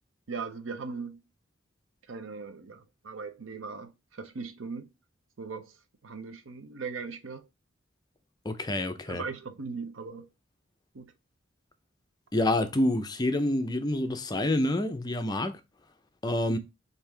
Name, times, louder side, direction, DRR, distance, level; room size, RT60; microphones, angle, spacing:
voice 1, 0.3-1.2 2.1-4.9 5.4-5.7 6.0-7.5 9.1-10.3 10.9-11.1, right 4 dB, 85° right, 0.7 m, -39 dB
voice 2, 8.4-9.2 12.3-15.6 16.2-16.6, left 1 dB, 20° left, 0.5 m, -27 dB
5.2 x 2.7 x 3.3 m
head